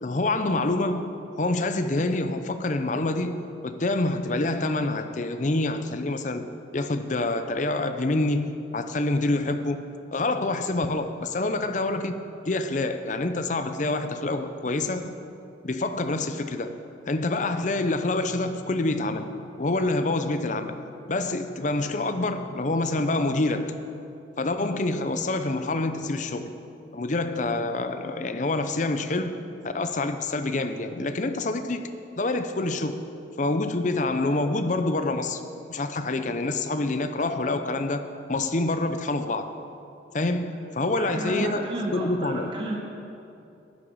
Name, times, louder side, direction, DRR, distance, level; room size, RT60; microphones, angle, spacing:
voice 1, 0.0-1.1 1.4-3.4 3.6-6.5 6.7-9.8 10.1-15.2 15.6-16.7 17.1-19.3 19.6-20.8 21.1-23.7 24.4-26.6 26.9-29.4 29.6-33.1 33.4-35.4 35.7-39.5 40.1-42.5, left 2 dB, 40° left, 9 dB, 0.6 m, -27 dB
voice 2, 41.0-42.8, right 1 dB, 25° right, -1 dB, 1.0 m, -31 dB
11.5 x 10.0 x 5.5 m, 2.7 s
head